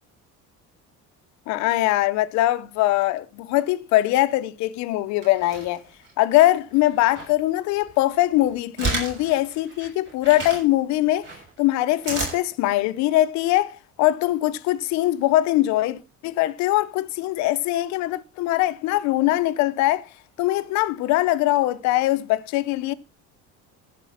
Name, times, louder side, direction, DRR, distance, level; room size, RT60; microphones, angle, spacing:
voice 1, 1.5-5.8 6.2-11.3 11.6-13.7 14.0-20.0 20.4-22.9, left 16 dB, 65° left, 0.8 m, -22 dB
sound 1, 5.2-6.1 6.7-7.3 7.8-10.6 11.2-12.4, right 3 dB, 35° right, 6.7 m, -31 dB
14.5 x 5.3 x 5.8 m
cardioid pair, 160°, 30 cm